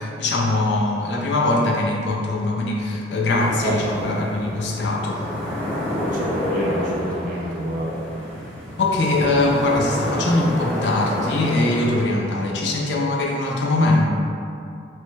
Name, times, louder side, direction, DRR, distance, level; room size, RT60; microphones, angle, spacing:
voice 1, 0.0-5.2 8.8-14.1, left 2 dB, 65° left, -1 dB, 0.4 m, -21 dB
sound 1, 3.3-11.9, left 1 dB, 5° left, 0.5 m, -29 dB
voice 2, 3.6-4.2 6.0-8.0, equal, 45° right, -4 dB, 0.5 m, -27 dB
3.1 x 2.1 x 3.1 m, 2.5 s
head